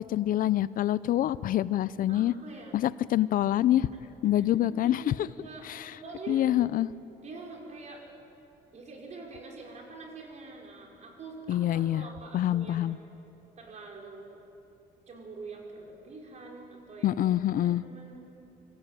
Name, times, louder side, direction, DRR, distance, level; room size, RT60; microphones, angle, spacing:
voice 1, 0.1-2.3 2.7-3.9 4.2-5.3 5.6-6.0 6.3-6.9 11.5-12.1 12.3-13.0 17.0-17.8, left 13 dB, 55° left, 18 dB, 0.5 m, -26 dB
voice 2, 2.1-2.8 4.2-4.5 4.8-5.2 5.4-5.7 5.9-6.4 7.2-8.0 8.7-12.9 13.6-14.4 15.1-18.3, right 3 dB, 45° right, -1 dB, 5.5 m, -45 dB
24.5 x 16.0 x 9.1 m, 2.7 s
cardioid pair, 110°, 17 cm